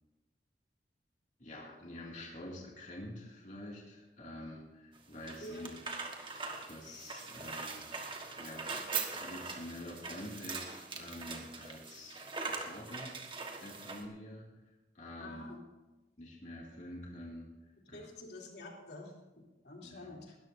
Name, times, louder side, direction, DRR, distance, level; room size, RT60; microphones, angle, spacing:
voice 1, 1.4-5.9 6.7-7.9 8.4-8.7 9.1-13.2 13.6-14.5 14.9-15.6 16.2-17.5 17.9-18.1 19.8-20.1, left 1 dB, 45° left, -3 dB, 2.4 m, -47 dB
sound 1, 5.0-14.1, right 4 dB, 30° right, 1.4 m, -42 dB
voice 2, 5.4-5.7 15.2-15.6 17.9-19.1 19.6-20.4, left 2 dB, 75° left, -1 dB, 3.1 m, -48 dB
20.5 x 13.5 x 2.7 m, 1.1 s
head